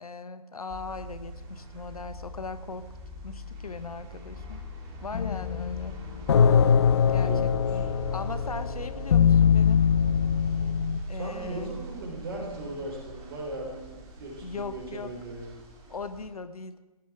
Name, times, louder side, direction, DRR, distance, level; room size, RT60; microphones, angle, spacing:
voice 1, 0.0-2.9 3.2-4.6 5.0-6.0 7.1-7.9 8.1-9.8 11.1-11.7 14.4-15.1 15.9-16.8, left 4 dB, 75° left, 13 dB, 0.8 m, -39 dB
sound 1, 0.7-16.3, left 1 dB, 20° right, 1.6 m, -39 dB
sound 2, 5.1-11.0, left 7 dB, 45° left, 0.4 m, -22 dB
voice 2, 7.0-8.1 11.1-15.5, right 1 dB, 40° right, -1 dB, 3.9 m, -38 dB
16.0 x 6.1 x 4.8 m, 1.1 s
figure-of-eight pair, 140°, 19 cm